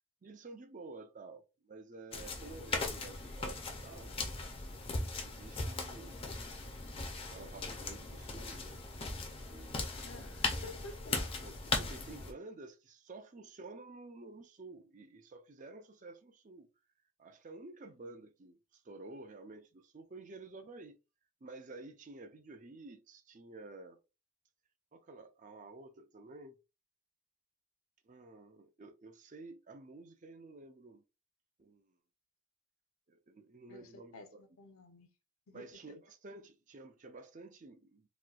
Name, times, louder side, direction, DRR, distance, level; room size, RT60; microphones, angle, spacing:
voice 1, 0.2-4.1 4.8-6.2 7.1-8.8 9.5-10.1 11.4-16.7 17.2-21.0 21.4-24.0 24.9-26.6 28.0-31.0 31.6-31.9 33.1-34.4 35.5-38.1, right 3 dB, 35° right, 0.4 m, -51 dB
sound 1, 2.1-12.3, left 3 dB, 25° left, 0.5 m, -39 dB
voice 2, 10.0-11.2 17.8-17.9 33.7-35.1 35.5-35.9, left 2 dB, 70° left, 0.7 m, -52 dB
4.1 x 2.2 x 2.4 m
head